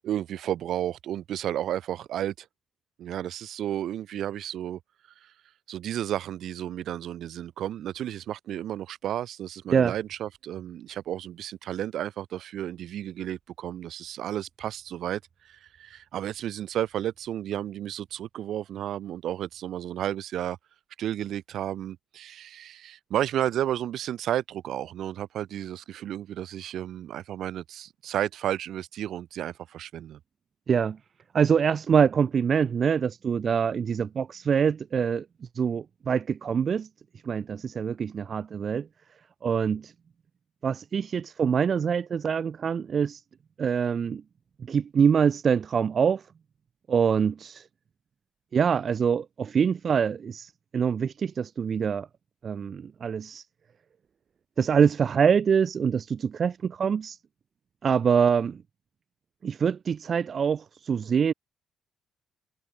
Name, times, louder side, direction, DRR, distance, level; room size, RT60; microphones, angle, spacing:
voice 1, 0.0-2.5 3.0-4.8 5.2-5.3 5.7-20.6 21.0-30.2, right 11 dB, 75° right, 7.5 m, -32 dB
voice 2, 30.7-31.0 31.3-35.2 35.6-36.9 37.2-38.9 39.4-39.9 40.6-43.2 43.6-44.2 44.6-46.2 46.9-47.6 48.5-52.1 52.4-53.4 54.6-57.2 57.8-58.6 59.4-61.3, right 7 dB, 50° right, 4.1 m, -25 dB
supercardioid pair, 75°, 0 cm